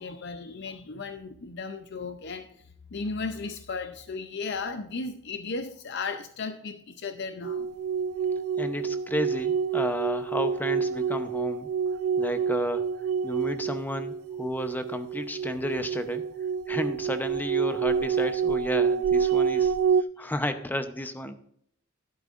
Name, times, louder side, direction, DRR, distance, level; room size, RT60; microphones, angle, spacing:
voice 1, 0.0-2.5 2.9-7.7 20.2-20.3, left 4 dB, 55° left, 0.6 m, -35 dB
sound 1, 7.4-20.0, right 6 dB, 90° right, 0.3 m, -27 dB
voice 2, 8.6-11.7 12.2-12.8 13.2-16.2 16.7-19.7 20.2-21.3, left 1 dB, 10° left, 0.7 m, -32 dB
12.0 x 11.0 x 2.5 m
head